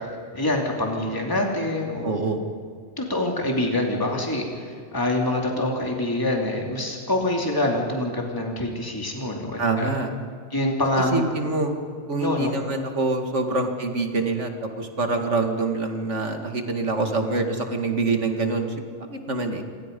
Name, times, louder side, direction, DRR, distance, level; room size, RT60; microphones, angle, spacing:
voice 1, 0.3-2.2 3.0-9.9 10.5-11.2 12.2-12.5, left 1 dB, 15° left, 0 dB, 2.8 m, -25 dB
voice 2, 2.0-2.4 9.6-10.1 11.1-11.7 12.1-18.7 19.0-19.6, right 3 dB, 75° right, 4 dB, 2.4 m, -25 dB
27.5 x 22.5 x 5.4 m, 2.1 s
omnidirectional pair, 1.3 m